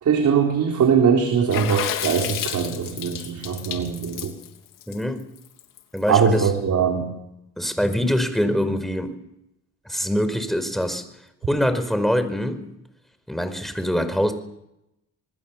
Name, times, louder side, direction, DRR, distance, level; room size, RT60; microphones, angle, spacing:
voice 1, 0.0-4.3 6.1-7.1, right 6 dB, 65° right, 3 dB, 4.0 m, -21 dB
Water / Splash splatter, 1.5-6.0, left 11 dB, 90° left, 3.1 m, -31 dB
voice 2, 4.9-5.2 5.9-6.5 7.6-9.2 9.8-11.0 11.4-12.7 13.3-14.3, equal, ahead, 9 dB, 4.8 m, -24 dB
27.0 x 20.0 x 7.3 m, 0.85 s
cardioid pair, 80°, 32 cm